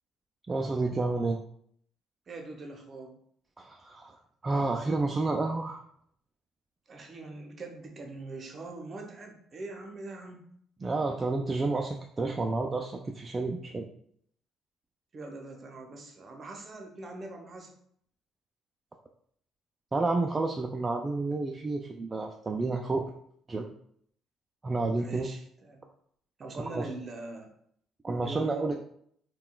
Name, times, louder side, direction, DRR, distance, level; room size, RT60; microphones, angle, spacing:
voice 1, 0.5-1.4 3.6-4.1 4.4-5.8 10.8-13.9 19.9-23.0 23.5-23.7 24.6-25.3 26.6-26.9 28.0-28.7, right 3 dB, 30° right, 1 dB, 0.3 m, -30 dB
voice 2, 2.3-3.2 6.9-10.4 15.1-17.7 25.0-25.8 26.4-27.5 28.2-28.7, right 2 dB, 45° right, 3 dB, 0.7 m, -42 dB
3.7 x 2.2 x 2.2 m, 0.65 s
hypercardioid pair, 60°, 0 cm